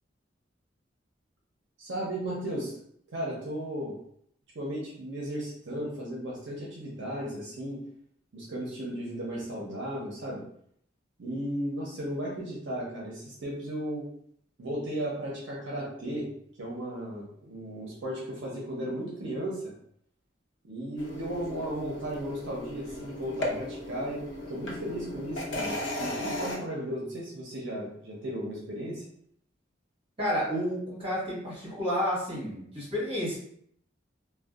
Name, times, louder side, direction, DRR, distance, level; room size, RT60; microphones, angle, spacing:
voice 1, 1.8-2.8 3.1-3.9 4.5-7.8 8.3-10.4 11.2-14.0 14.6-16.3 16.6-19.7 20.7-29.0, right 1 dB, 75° right, -4 dB, 0.6 m, -35 dB
sound 1, 21.0-26.6, left 1 dB, 75° left, 0.6 m, -36 dB
voice 2, 30.2-33.4, equal, 30° right, -7 dB, 1.4 m, -31 dB
2.6 x 2.2 x 2.4 m, 0.66 s
head